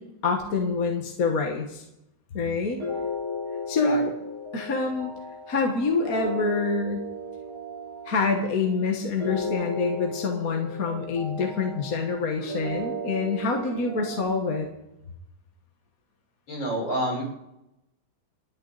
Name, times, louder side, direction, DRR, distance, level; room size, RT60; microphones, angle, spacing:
voice 1, 0.0-1.8 2.3-2.8 3.7-4.1 4.5-5.1 5.5-7.0 8.1-14.7, left 4 dB, 45° left, 2 dB, 1.8 m, -26 dB
sound 1, 2.8-14.2, left 1 dB, 85° right, 6.2 m, -35 dB
voice 2, 3.8-4.1 16.5-17.2, right 1 dB, 70° left, -1 dB, 6.1 m, -28 dB
28.5 x 9.9 x 4.1 m, 0.88 s
omnidirectional pair, 2.2 m